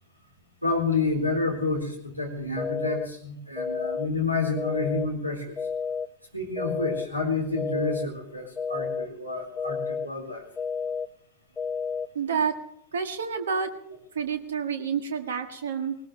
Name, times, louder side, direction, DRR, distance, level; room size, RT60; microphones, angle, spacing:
voice 1, 0.6-5.6 6.3-10.4, left 3 dB, 90° right, 1 dB, 4.1 m, -29 dB
sound 1, 2.6-3.1 3.6-4.1 4.6-5.1 5.6-6.1 6.6-7.1 7.6-8.1 8.6-9.1 9.6-10.1 10.6-11.1 11.6-12.1, left 6 dB, 15° left, 0.5 m, -30 dB
voice 2, 12.1-12.5 12.9-13.7 14.1-16.0, right 6 dB, 65° right, 8 dB, 1.6 m, -28 dB
20.0 x 19.0 x 3.3 m, 0.73 s
figure-of-eight pair, 90°, 0 cm